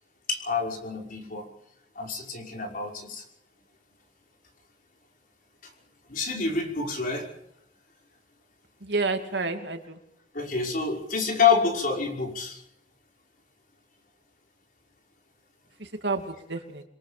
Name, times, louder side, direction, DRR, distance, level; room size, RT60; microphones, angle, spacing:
voice 1, 0.3-1.5 2.0-3.2 6.1-7.3 10.3-12.6, left 5 dB, 50° left, 1 dB, 5.6 m, -27 dB
voice 2, 8.8-10.0 15.8-16.8, right 3 dB, 75° right, 5 dB, 2.7 m, -30 dB
28.0 x 22.0 x 5.2 m, 0.77 s
head